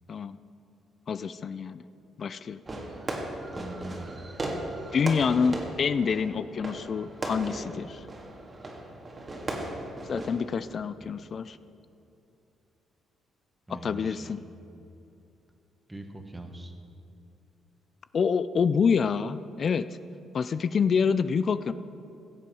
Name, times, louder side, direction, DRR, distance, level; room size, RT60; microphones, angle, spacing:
voice 1, 1.1-1.8 2.2-2.6 4.9-8.0 10.1-11.6 13.8-14.4 18.1-19.9 20.3-21.7, left 6 dB, 50° left, 14 dB, 0.3 m, -27 dB
Fireworks, 2.7-10.7, right 2 dB, 30° right, 1.8 m, -37 dB
voice 2, 3.5-4.1 11.0-11.2 13.7-14.4 15.9-16.7, right 1 dB, 10° right, 5 dB, 1.3 m, -42 dB
16.0 x 7.6 x 4.8 m, 2.7 s
cardioid pair, 90°, 0 cm